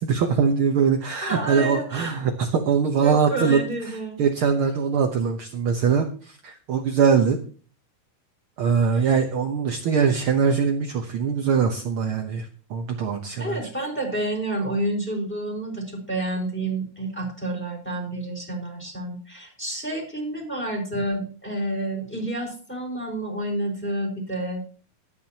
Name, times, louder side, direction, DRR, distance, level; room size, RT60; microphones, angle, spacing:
voice 1, 0.0-3.6 3.8-7.4 8.6-13.6, right 6 dB, 65° right, 4 dB, 1.3 m, -22 dB
voice 2, 1.2-2.1 3.0-4.2 9.0-9.1 13.4-24.6, right 1 dB, 5° left, 1 dB, 4.6 m, -29 dB
21.0 x 9.1 x 2.9 m, 0.41 s
omnidirectional pair, 3.8 m